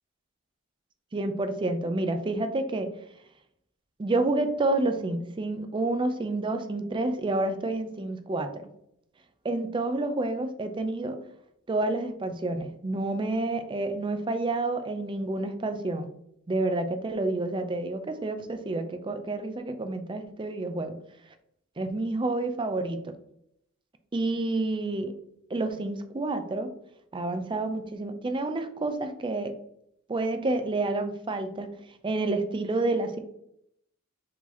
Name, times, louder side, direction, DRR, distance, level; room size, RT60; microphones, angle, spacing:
voice 1, 1.1-2.9 4.0-8.7 9.4-11.2 11.7-16.1 16.5-21.0 21.8-23.1 24.1-25.1 25.5-26.7 27.1-29.6 30.1-31.7 32.0-33.2, right 2 dB, 25° right, 8 dB, 0.4 m, -29 dB
4.7 x 2.8 x 4.0 m, 0.74 s
head